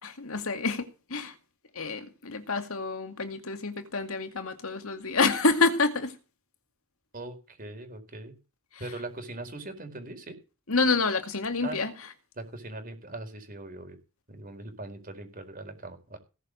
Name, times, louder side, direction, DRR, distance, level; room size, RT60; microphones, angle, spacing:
voice 1, 0.0-1.3 1.8-6.1 10.7-11.9, left 3 dB, 80° left, 2.2 m, -28 dB
voice 2, 7.1-8.3 8.8-10.3 11.6-11.8 12.4-14.0 14.3-16.2, right 2 dB, 40° right, 4.5 m, -40 dB
18.5 x 6.6 x 6.7 m
head